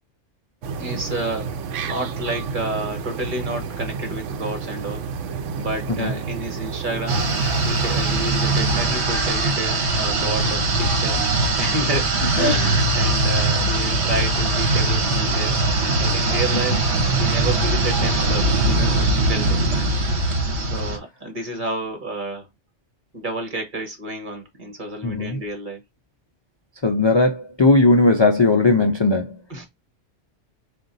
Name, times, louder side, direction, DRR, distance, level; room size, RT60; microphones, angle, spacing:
sound 1, 0.6-9.0, right 5 dB, 75° right, 0.9 m, -31 dB
voice 1, 0.8-5.0 5.6-7.2 7.6-11.2 11.6-15.6 16.0-16.8 17.2-19.6 20.6-22.5 23.1-25.8 29.5-29.6, right 1 dB, 40° right, 1.5 m, -30 dB
sound 2, 7.1-21.0, right 2 dB, 60° right, 1.3 m, -21 dB
sound 3, 10.0-17.8, left 2 dB, 20° left, 1.6 m, -39 dB
voice 2, 25.0-25.4 26.8-29.4, left 2 dB, 40° left, 0.3 m, -17 dB
3.8 x 2.5 x 4.0 m
omnidirectional pair, 1.3 m